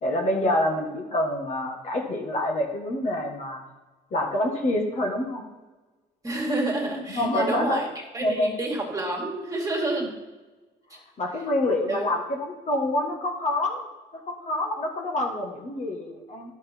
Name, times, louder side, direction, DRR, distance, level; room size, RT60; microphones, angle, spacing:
voice 1, 0.0-3.7 4.1-5.4 7.2-7.8 8.2-8.5 10.0-10.1 11.2-13.9 14.3-16.5, left 1 dB, 45° left, 1 dB, 1.7 m, -27 dB
voice 2, 6.2-7.9 8.1-10.1 10.9-11.0 11.9-12.1, right 2 dB, 20° right, 0 dB, 2.3 m, -28 dB
11.0 x 6.3 x 4.5 m, 1.2 s
cardioid pair, 110°, 17 cm